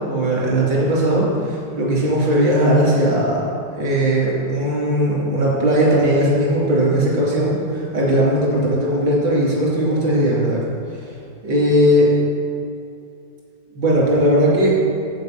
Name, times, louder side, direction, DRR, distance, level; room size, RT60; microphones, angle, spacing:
voice 1, 0.0-3.4 3.8-10.6 10.9-11.1 11.4-12.1 13.8-14.7, right 1 dB, 85° right, -5 dB, 3.5 m, -18 dB
7.9 x 7.7 x 5.9 m, 2.5 s
omnidirectional pair, 2.0 m